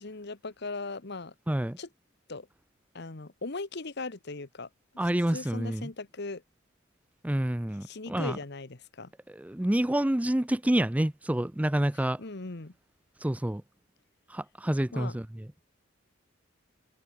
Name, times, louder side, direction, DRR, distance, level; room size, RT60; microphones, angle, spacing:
voice 1, 0.0-1.3 1.8-1.9 2.3-2.5 2.9-4.7 5.3-6.4 7.8-9.1 12.2-12.7 14.9-15.2, left 3 dB, 55° left, 1.3 m, -38 dB
voice 2, 1.5-1.8 5.0-5.9 7.2-8.4 9.3-12.2 13.2-13.6 14.3-15.5, right 1 dB, 5° right, 0.4 m, -28 dB
open air
head